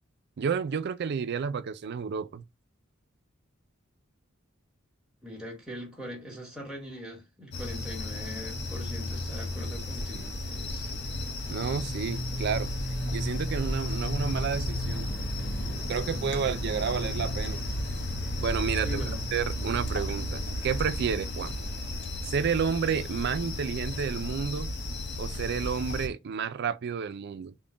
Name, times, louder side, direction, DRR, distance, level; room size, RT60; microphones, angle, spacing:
voice 1, 0.4-2.4 11.5-12.7 13.1-15.1 15.7-17.6 18.4-19.0 19.3-21.6 22.2-24.8 25.2-27.5, right 6 dB, 55° right, 0.4 m, -31 dB
voice 2, 5.2-10.9 18.8-19.2, left 1 dB, 5° right, 1.3 m, -41 dB
sound 1, 7.5-26.1, left 1 dB, 55° left, 0.7 m, -33 dB
3.6 x 2.2 x 3.8 m
head